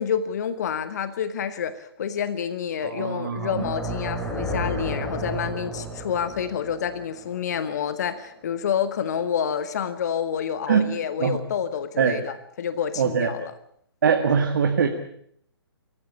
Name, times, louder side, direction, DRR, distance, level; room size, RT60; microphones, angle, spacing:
voice 1, 0.0-13.5, left 8 dB, 40° left, 13 dB, 1.1 m, -28 dB
voice 2, 2.8-3.6 10.7-10.9 11.2-11.4 12.0-12.2 13.0-13.3 14.0-14.9, right 6 dB, 45° right, 5 dB, 1.9 m, -22 dB
sound 1, 3.3-8.4, equal, 10° left, 3.2 m, -32 dB
24.5 x 14.5 x 8.5 m, 0.68 s
figure-of-eight pair, 130°, 14 cm